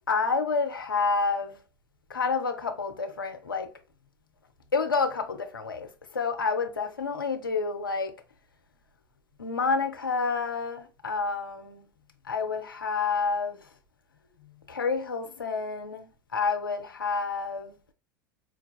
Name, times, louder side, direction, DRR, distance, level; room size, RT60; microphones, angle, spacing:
voice 1, 0.1-1.6 2.1-3.7 4.7-8.1 9.4-11.8 12.3-13.6 14.7-16.1 16.3-17.7, left 4 dB, 80° left, 0.6 m, -29 dB
4.5 x 2.3 x 2.2 m
figure-of-eight pair, 80°, 11 cm